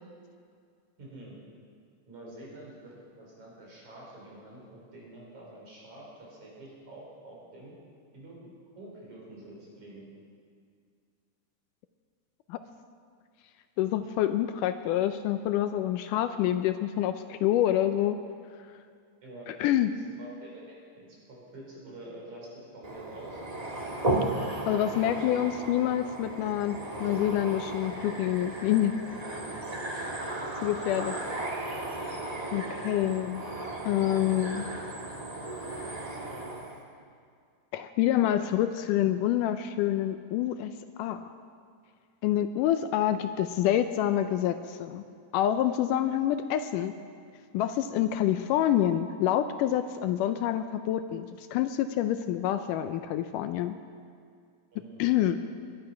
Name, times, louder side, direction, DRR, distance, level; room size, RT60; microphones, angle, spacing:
voice 1, 1.0-1.4 2.1-7.7 8.1-10.1 19.2-19.5 19.9-23.4 25.0-25.5 30.2-30.3 32.3-32.7 54.7-55.1, right 1 dB, 60° right, -4 dB, 5.7 m, -47 dB
voice 2, 13.8-18.2 19.5-19.9 24.7-29.0 29.9-30.1 30.6-31.2 32.5-33.4 33.9-34.7 37.7-40.7 41.0-41.3 42.2-45.0 45.3-47.0 47.5-53.8 55.0-55.4, left 12 dB, 80° left, 10 dB, 2.0 m, -27 dB
sound 1, 22.8-36.8, right 2 dB, 40° right, 0.5 m, -35 dB
21.5 x 11.0 x 5.8 m, 2.2 s
omnidirectional pair, 3.9 m